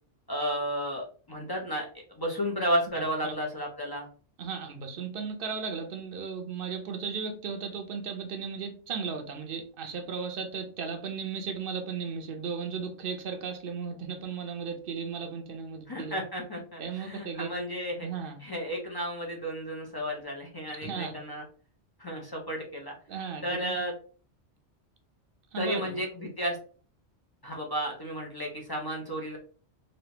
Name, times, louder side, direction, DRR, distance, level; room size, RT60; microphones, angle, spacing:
voice 1, 0.3-1.9 2.2-4.1 15.9-18.1 18.4-21.4 22.0-22.9 23.4-23.9 25.6-26.6 27.4-29.4, equal, 25° left, 0.5 m, -32 dB
voice 2, 4.4-16.2 16.8-17.5 18.0-18.4 20.8-21.1 23.1-23.8 25.5-25.8, right 6 dB, 55° right, 0.8 m, -35 dB
3.1 x 2.6 x 2.9 m
omnidirectional pair, 1.2 m